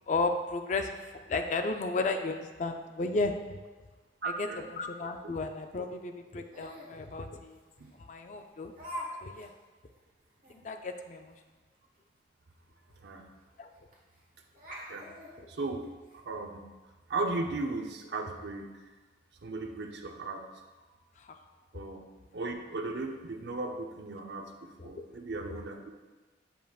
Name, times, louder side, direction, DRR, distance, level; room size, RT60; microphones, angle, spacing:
voice 1, 0.1-3.6 4.2-7.6 8.1-8.7 9.2-9.5 10.5-11.3 13.6-13.7 15.4-15.5 21.2-21.3 24.8-25.0, left 3 dB, 40° left, 6 dB, 0.4 m, -34 dB
voice 2, 4.2-4.7 5.2-5.3 7.8-7.9 10.6-10.7 13.0-13.3 14.9-15.1 15.6-15.8 16.1-16.7 17.1-18.8 19.4-20.5 21.7-22.1 22.3-25.9, right 3 dB, 70° right, 4 dB, 0.6 m, -36 dB
Laughter, 6.5-7.0 7.8-7.9 8.8-9.1 9.4-9.5 10.0-10.1 10.4-10.6 12.5-12.6 12.9-13.0 13.9-14.2 14.6-16.2, equal, 50° right, 1.2 m, -43 dB
7.6 x 5.3 x 2.3 m, 1.3 s
head